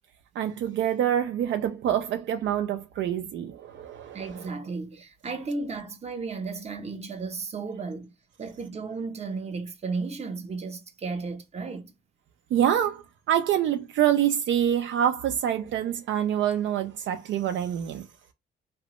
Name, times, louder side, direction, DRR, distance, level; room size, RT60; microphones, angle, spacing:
voice 1, 0.4-4.3 12.5-18.1, right 10 dB, 70° right, 0.4 m, -26 dB
voice 2, 4.1-8.1 8.4-11.9, right 4 dB, 30° right, 0.7 m, -34 dB
3.0 x 2.2 x 2.9 m
cardioid pair, 90°, 20 cm